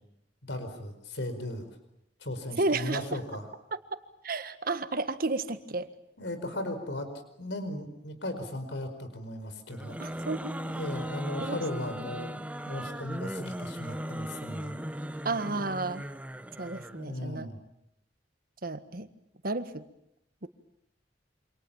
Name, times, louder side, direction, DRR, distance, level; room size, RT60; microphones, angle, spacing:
voice 1, 0.5-1.6 2.2-3.5 6.2-7.1 7.4-10.2 10.6-12.3 12.7-14.7 16.9-17.6, left 1 dB, 80° left, 9 dB, 4.9 m, -37 dB
voice 2, 2.6-3.0 4.2-5.9 10.0-10.5 11.4-11.6 15.2-16.1 16.6-17.5 18.6-19.1 19.4-19.8 20.4-20.5, right 3 dB, 55° right, 11 dB, 1.6 m, -32 dB
sound 1, 9.7-17.0, equal, 10° right, 1.2 m, -38 dB
28.5 x 26.5 x 7.3 m, 0.80 s
head